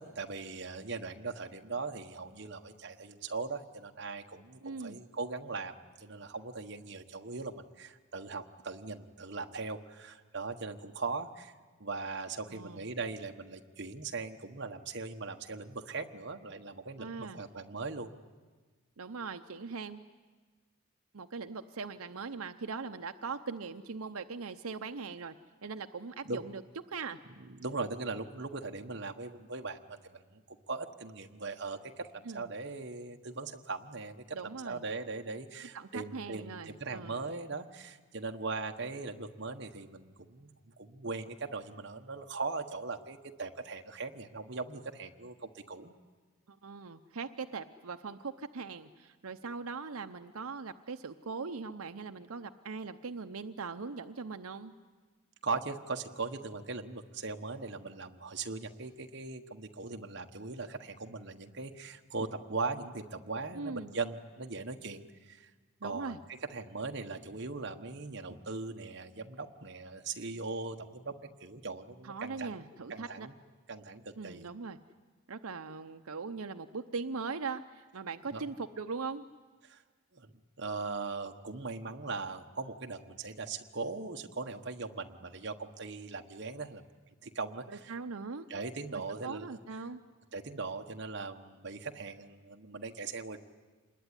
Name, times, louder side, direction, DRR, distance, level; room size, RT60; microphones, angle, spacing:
voice 1, 0.0-11.5 11.8-18.1 26.2-26.4 27.4-40.5 40.8-45.9 55.4-65.5 65.8-66.2 66.5-71.1 71.4-73.3 73.7-74.4 78.3-78.4 79.6-79.8 80.1-86.8 87.2-87.9 88.5-89.5 90.3-93.4, right 3 dB, 50° right, 4 dB, 1.3 m, -40 dB
voice 2, 4.6-5.0 12.5-12.9 17.0-17.4 19.0-20.1 21.1-25.3 25.6-26.6 26.9-27.2 32.2-32.5 34.3-34.8 35.7-37.2 46.5-54.7 63.5-63.9 65.8-66.2 72.0-73.3 74.2-74.8 75.3-79.2 87.7-88.5 88.9-90.0, right 4 dB, 85° right, 8 dB, 0.8 m, -40 dB
26.5 x 21.0 x 9.9 m, 1.4 s
head